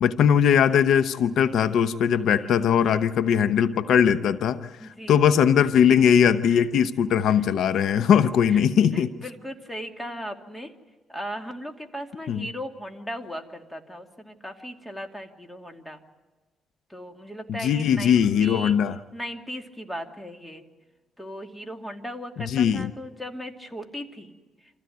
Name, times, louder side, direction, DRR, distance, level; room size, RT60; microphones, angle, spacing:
voice 1, 0.0-4.7 5.1-9.1 12.3-12.5 17.5-19.0 22.5-22.9, left 8 dB, 75° left, 12 dB, 0.8 m, -20 dB
voice 2, 4.8-5.2 6.4-6.8 7.3-7.4 7.9-8.1 8.5-8.6 8.9-10.7 11.1-16.0 16.9-18.8 19.1-20.6 21.2-24.4, equal, 10° left, 4 dB, 2.6 m, -37 dB
26.5 x 15.5 x 9.3 m, 1.3 s
cardioid pair, 90°, 0 cm